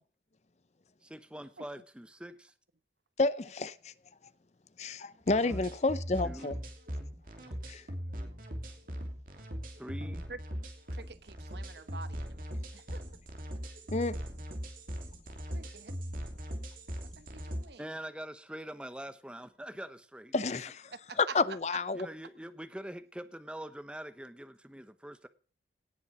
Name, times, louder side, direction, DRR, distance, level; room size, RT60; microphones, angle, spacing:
voice 1, 1.0-2.5 5.4-5.7 6.2-6.6 7.4-7.6 9.8-10.3 17.8-20.3 21.9-25.3, right 1 dB, 5° right, 0.9 m, -44 dB
voice 2, 3.2-3.9 4.8-6.5 7.7-7.8 13.9-14.2 20.3-20.8 21.2-22.1, left 3 dB, 40° left, 0.6 m, -30 dB
sound 1, 5.3-17.6, equal, 50° right, 3.1 m, -40 dB
voice 3, 10.9-12.5 12.7-13.0 15.5-15.9 17.2-17.8 21.1-21.3 21.7-21.8, right 4 dB, 75° right, 1.1 m, -47 dB
18.0 x 7.0 x 6.0 m
head